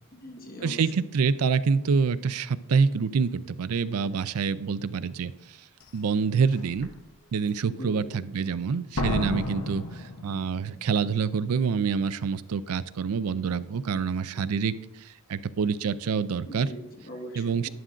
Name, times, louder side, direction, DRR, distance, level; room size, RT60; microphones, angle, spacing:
voice 1, 0.1-0.8 7.6-8.3 14.3-14.4 16.5-17.7, equal, 40° left, 1 dB, 1.5 m, -41 dB
voice 2, 0.6-5.6 5.9-6.9 7.3-16.7 17.4-17.7, right 5 dB, 80° right, 15 dB, 0.4 m, -26 dB
Slam, 5.8-5.9 6.5-6.9 9.0-10.8 11.1-11.2, left 2 dB, 75° left, 0.9 m, -31 dB
11.0 x 10.0 x 2.5 m, 0.87 s
head